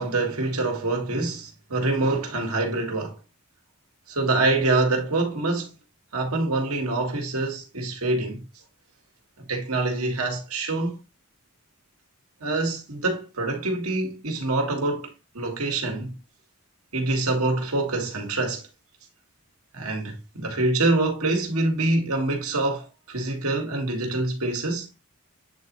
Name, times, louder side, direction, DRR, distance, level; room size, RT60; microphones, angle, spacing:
voice 1, 0.0-3.2 4.1-5.7 6.1-8.4 9.4-11.0 12.4-16.1 16.9-18.6 19.7-24.9, right 2 dB, 90° right, 1.9 m, -25 dB
8.6 x 4.1 x 3.0 m
head